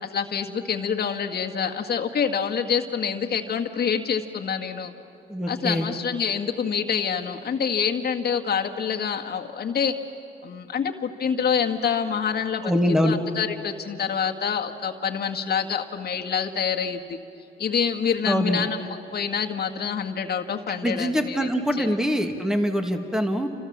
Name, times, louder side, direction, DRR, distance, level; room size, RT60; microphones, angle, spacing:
voice 1, 0.0-4.9 5.5-9.9 10.4-12.7 13.0-17.2 17.6-18.8 19.1-21.5 21.8-21.9, left 7 dB, 55° left, 3 dB, 1.9 m, -26 dB
voice 2, 5.3-5.9 12.6-13.2 18.3-18.6 20.8-23.5, equal, 5° right, 5 dB, 2.2 m, -23 dB
29.5 x 27.0 x 7.5 m, 2.9 s
cardioid pair, 90°, 20 cm